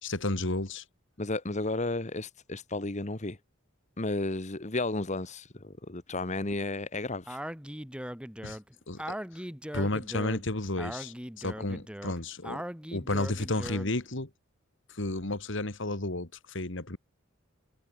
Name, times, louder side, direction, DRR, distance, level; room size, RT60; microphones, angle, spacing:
voice 1, 0.0-0.8 8.4-8.6 8.9-9.0 9.3-9.4 9.7-12.6 12.9-14.3 14.9-17.0, left 2 dB, 65° left, 2.4 m, -32 dB
voice 2, 1.2-3.4 4.0-7.4, left 2 dB, 35° left, 1.5 m, -33 dB
Speech, 7.3-14.0, equal, 5° right, 3.8 m, -39 dB
head